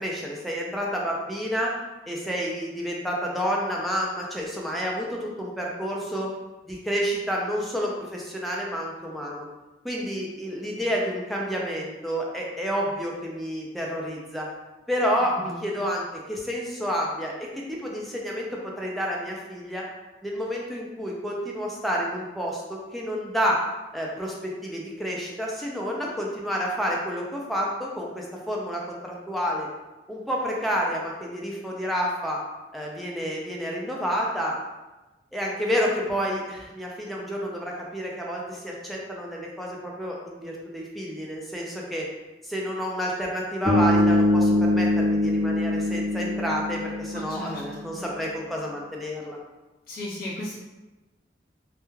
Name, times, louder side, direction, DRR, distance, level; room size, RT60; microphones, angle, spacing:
voice 1, 0.0-1.7 2.1-6.3 6.7-9.5 9.8-14.5 14.9-19.8 20.2-23.6 23.9-29.7 30.1-32.4 32.7-34.5 35.3-42.1 42.4-49.4, equal, ahead, -3 dB, 0.4 m, -29 dB
voice 2, 15.2-15.7 47.1-48.0 49.9-50.5, left 1 dB, 55° left, -7 dB, 0.9 m, -36 dB
Bass guitar, 43.7-47.7, left 1 dB, 30° right, 0.9 m, -23 dB
2.2 x 2.2 x 3.0 m, 1.1 s
head